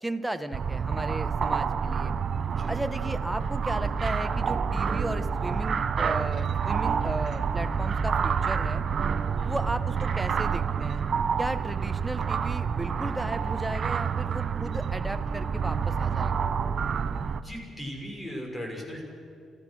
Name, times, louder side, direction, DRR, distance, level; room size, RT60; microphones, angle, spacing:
voice 1, 0.0-2.1 2.7-8.8 9.4-11.0 11.4-16.3, right 1 dB, 5° right, 8 dB, 1.2 m, -35 dB
sound 1, 0.5-17.4, right 6 dB, 50° right, 0.7 m, -28 dB
voice 2, 17.3-19.0, equal, 15° left, 0 dB, 6.2 m, -38 dB
28.0 x 14.5 x 6.4 m, 2.4 s
cardioid pair, 90°, 0 cm